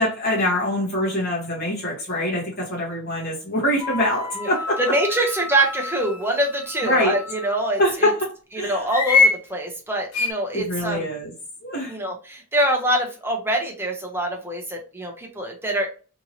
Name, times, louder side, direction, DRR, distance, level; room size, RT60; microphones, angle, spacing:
voice 1, 0.0-4.8 5.2-5.3 6.8-7.2 7.8-8.3 8.6-8.9 10.5-11.3 11.6-12.0, left 1 dB, 40° left, -4 dB, 1.0 m, -24 dB
sound 1, 3.8-7.6 8.9-9.4 10.1-10.3, left 4 dB, 85° left, 0.7 m, -25 dB
voice 2, 4.8-8.1 8.5-11.1 11.9-15.9, right 1 dB, 10° right, 1 dB, 0.6 m, -24 dB
2.8 x 2.7 x 2.7 m, 0.35 s
head